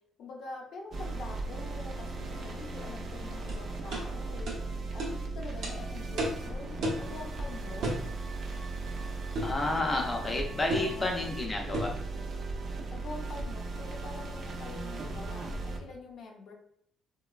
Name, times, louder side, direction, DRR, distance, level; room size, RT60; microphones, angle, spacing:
voice 1, 0.2-4.6 4.9-7.9 10.7-11.2 12.9-16.5, left 3 dB, 75° left, 0 dB, 0.5 m, -45 dB
sound 1, 0.9-15.8, right 2 dB, 55° right, 0.4 m, -37 dB
sound 2, 3.5-3.6 3.9-4.1 4.5-4.6 5.0-5.1 5.6-5.7 6.2-6.4 6.8-7.1 7.8-8.1 9.3-9.6 10.7-10.9 11.7-12.0, right 1 dB, 80° right, 0.7 m, -32 dB
voice 2, 9.4-11.9, left 2 dB, 25° left, 0 dB, 0.5 m, -30 dB
3.0 x 2.2 x 2.2 m, 0.68 s
cardioid pair, 95°, 0 cm